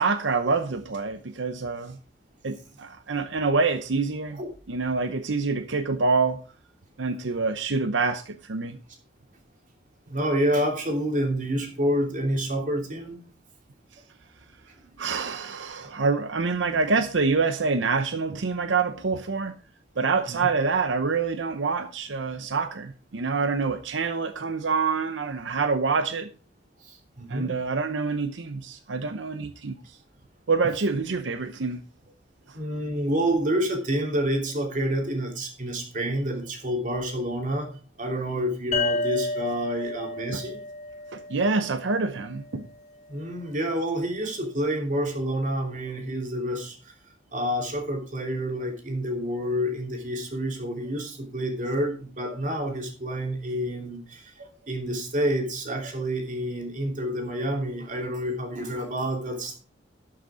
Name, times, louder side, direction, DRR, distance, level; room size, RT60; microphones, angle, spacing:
voice 1, 0.0-2.0 2.4-4.4 4.7-6.4 7.0-8.8 15.0-19.6 20.0-26.3 27.3-29.8 30.5-31.8 40.3-40.4 41.1-42.7, right 4 dB, 90° right, 0.8 m, -26 dB
voice 2, 10.1-13.2 15.0-15.4 26.8-27.5 32.5-37.7 38.0-40.6 43.1-46.9 47.3-59.6, equal, 45° right, 3.0 m, -28 dB
sound 1, 38.7-42.2, left 2 dB, 40° left, 5.1 m, -31 dB
12.5 x 6.5 x 4.8 m
head